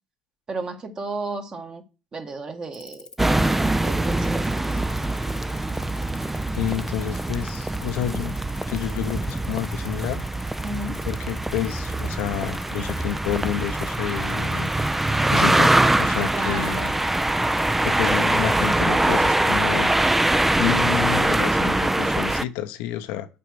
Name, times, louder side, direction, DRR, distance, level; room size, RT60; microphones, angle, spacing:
voice 1, 0.5-1.8 2.1-3.1 3.8-5.0 10.6-11.0 16.3-17.0, right 3 dB, 30° right, 1.6 m, -33 dB
sound 1, 2.7-18.8, left 5 dB, 25° left, 1.0 m, -45 dB
sound 2, 3.2-22.4, right 1 dB, 10° right, 0.4 m, -23 dB
voice 2, 6.5-8.4 8.7-10.2 11.1-14.7 15.3-16.9 17.8-19.9 20.6-23.3, left 11 dB, 65° left, 0.8 m, -29 dB
6.9 x 4.6 x 6.1 m
figure-of-eight pair, 65°, 3 cm